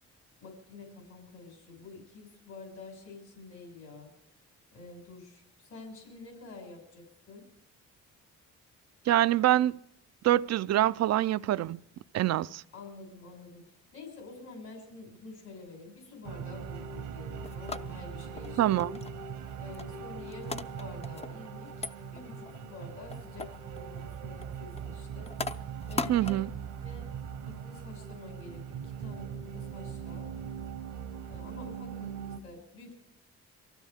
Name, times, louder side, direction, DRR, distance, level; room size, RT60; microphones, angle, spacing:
voice 1, 0.4-4.1 4.7-7.4 12.7-18.7 19.6-25.3 25.9-26.4 26.8-27.1 27.4-30.3 31.3-32.9, left 3 dB, 70° left, 5.9 m, -48 dB
voice 2, 9.1-9.8 10.2-11.8 12.1-12.6 18.6-19.0 26.1-26.5, right 13 dB, 60° right, 0.5 m, -25 dB
sound 1, 16.2-32.4, right 7 dB, 85° right, 1.3 m, -41 dB
sound 2, 17.2-28.8, left 4 dB, 20° left, 0.6 m, -42 dB
23.5 x 15.0 x 3.6 m
cardioid pair, 90°, 30 cm